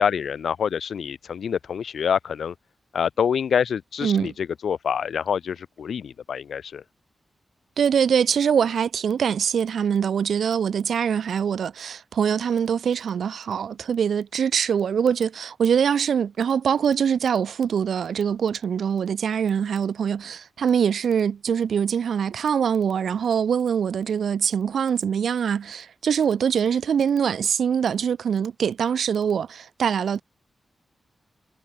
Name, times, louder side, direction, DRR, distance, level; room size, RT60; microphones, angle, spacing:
voice 1, 0.0-2.5 2.9-6.8, left 7 dB, 85° left, 0.7 m, -26 dB
voice 2, 4.0-4.3 7.8-30.2, right 7 dB, 85° right, 2.4 m, -23 dB
wide cardioid pair, 90°, 0 cm